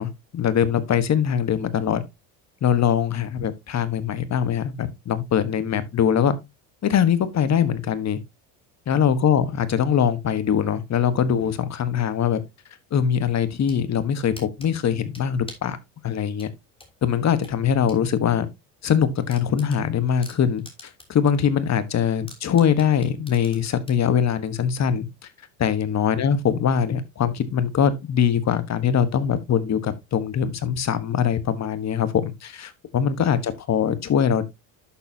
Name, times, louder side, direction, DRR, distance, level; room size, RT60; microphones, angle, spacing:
voice 1, 0.0-2.0 2.6-6.4 6.8-8.2 8.9-12.4 12.9-15.8 16.0-16.5 17.0-18.5 18.8-25.1 25.6-34.4, left 8 dB, 40° left, 1.4 m, -22 dB
sound 1, 13.5-13.8 14.4-15.7 16.4-18.0 18.4-18.5 18.9-19.0 19.3-21.3 21.6-21.7 22.3-24.0, left 2 dB, 10° left, 3.1 m, -45 dB
11.0 x 6.7 x 2.8 m
supercardioid pair, 100°, 43 cm